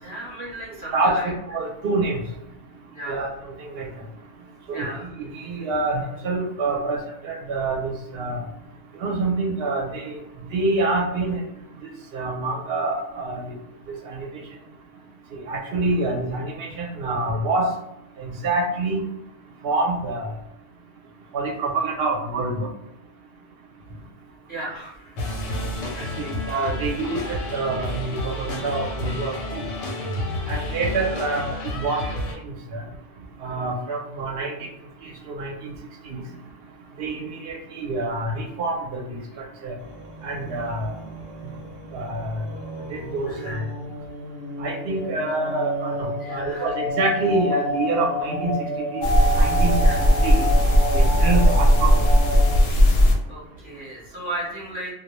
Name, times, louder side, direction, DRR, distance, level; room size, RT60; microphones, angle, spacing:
voice 1, 0.0-1.3 2.9-3.3 4.7-5.1 24.5-25.2 25.7-26.3 43.3-43.6 46.2-46.7 49.8-50.0 51.2-51.4 53.3-54.9, right 1 dB, 20° right, -7 dB, 0.6 m, -35 dB
voice 2, 1.5-2.2 3.1-3.3 3.6-3.9 4.7-4.9 5.2-8.4 9.0-10.1 10.5-11.4 12.1-13.5 13.9-14.3 15.3-17.7 18.2-19.0 19.6-20.3 21.3-22.7 26.2-29.6 30.5-31.5 31.7-32.0 32.4-32.8 33.4-34.7 35.0-35.7 36.0-36.2 37.0-39.7 40.2-40.9 41.9-42.4 42.9-43.6 44.6-48.5 48.9-49.1 49.4-49.7 50.2-50.5 50.9-52.1, right 3 dB, 65° right, 1 dB, 0.7 m, -26 dB
sound 1, 25.2-32.3, left 1 dB, 90° left, 1.0 m, -30 dB
sound 2, 39.8-52.6, left 1 dB, 30° left, 0.7 m, -31 dB
sound 3, 49.0-53.2, equal, 65° left, 0.7 m, -17 dB
2.2 x 2.0 x 2.9 m, 0.84 s
omnidirectional pair, 1.3 m